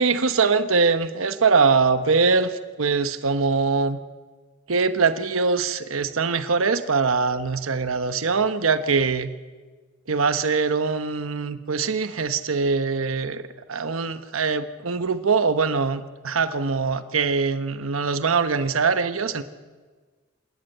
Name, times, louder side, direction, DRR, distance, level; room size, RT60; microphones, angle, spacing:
voice 1, 0.0-4.0 4.7-9.3 10.1-13.4 13.7-19.4, right 4 dB, 90° right, 11 dB, 1.0 m, -22 dB
27.5 x 13.5 x 9.1 m, 1.4 s
head